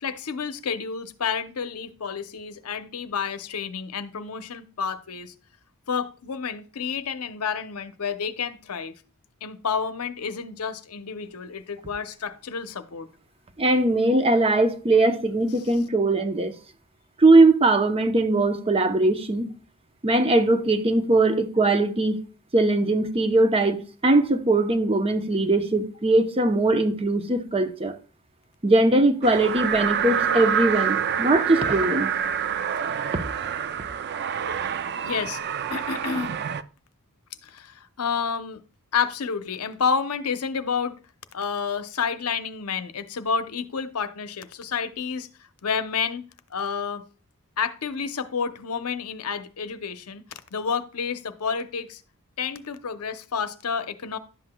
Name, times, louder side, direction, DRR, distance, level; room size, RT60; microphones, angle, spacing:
voice 1, 0.0-5.3 5.9-9.0 9.4-13.1 35.0-35.4 35.7-36.4 37.4-38.6 38.9-41.0 41.3-45.3 45.6-47.0 47.6-50.2 50.5-52.0 52.4-54.2, left 6 dB, 80° left, 0.7 m, -30 dB
voice 2, 13.6-16.5 17.2-19.5 20.0-22.2 22.5-28.0 28.6-32.1, right 2 dB, 25° right, 0.7 m, -20 dB
sound 1, 29.2-36.6, right 8 dB, 50° right, 0.4 m, -27 dB
11.0 x 7.7 x 2.2 m
head